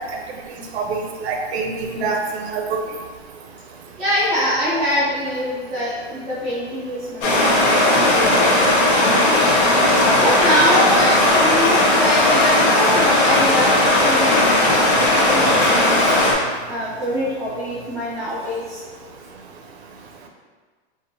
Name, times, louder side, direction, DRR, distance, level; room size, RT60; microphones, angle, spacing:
voice 1, 0.7-2.8, right 4 dB, 75° right, 2 dB, 0.5 m, -25 dB
voice 2, 4.0-8.4 8.9-9.5 9.9-16.1 16.7-18.8, equal, ahead, -15 dB, 0.4 m, -24 dB
Stream, 7.2-16.3, left 1 dB, 55° left, 0.8 m, -16 dB
3.1 x 2.6 x 2.6 m, 1.5 s
supercardioid pair, 145°, 33 cm